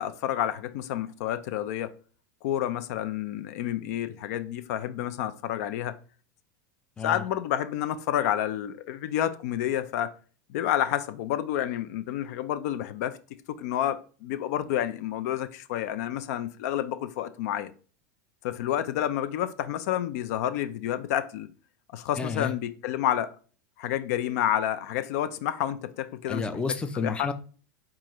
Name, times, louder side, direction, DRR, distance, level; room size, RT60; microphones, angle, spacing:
voice 1, 0.0-1.9 2.4-5.9 7.0-10.1 10.5-13.2 13.5-17.7 18.4-21.5 21.9-23.3 23.8-26.5 26.9-27.3, left 11 dB, 65° left, 0.4 m, -29 dB
voice 2, 22.2-22.5 26.3-27.3, left 4 dB, 10° left, 0.5 m, -30 dB
7.2 x 2.5 x 3.0 m
supercardioid pair, 125°, 9 cm